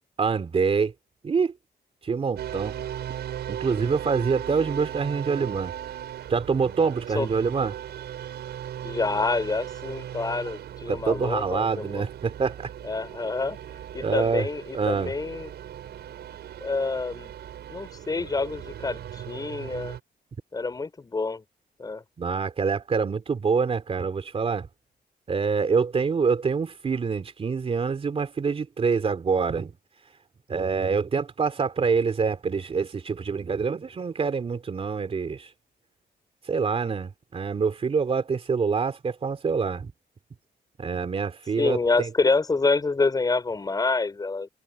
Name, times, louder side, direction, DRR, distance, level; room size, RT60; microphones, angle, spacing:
voice 1, 0.2-0.9 1.2-1.5 2.0-2.8 3.5-5.7 6.3-7.8 10.9-12.7 14.0-14.5 14.7-15.1 22.2-24.7 25.3-29.7 30.5-35.5 36.5-39.9 40.8-42.1, right 5 dB, 35° right, 3.4 m, -26 dB
sound 1, 2.4-20.0, right 10 dB, 85° right, 6.2 m, -38 dB
voice 2, 8.8-12.0 12.8-13.6 13.9-15.5 16.6-17.3 17.7-20.0 20.5-21.4 21.8-22.0 41.6-44.5, left 3 dB, 20° left, 5.3 m, -27 dB
wide cardioid pair, 155°, 17 cm